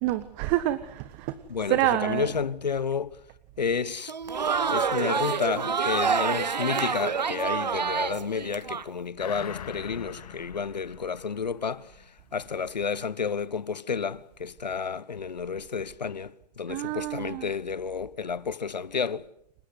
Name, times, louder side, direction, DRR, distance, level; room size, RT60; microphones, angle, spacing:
voice 1, 0.0-2.3 16.7-17.5, right 15 dB, 30° right, 1.4 m, -28 dB
voice 2, 1.5-3.2 3.6-4.1 4.7-11.9 12.3-19.3, left 6 dB, 85° left, 1.2 m, -31 dB
Crowd, 4.0-8.8, right 6 dB, 85° right, 1.5 m, -27 dB
sound 1, 9.2-12.1 12.5-12.6, left 9 dB, 60° left, 3.0 m, -42 dB
28.5 x 16.5 x 9.7 m
hypercardioid pair, 130°, 21 cm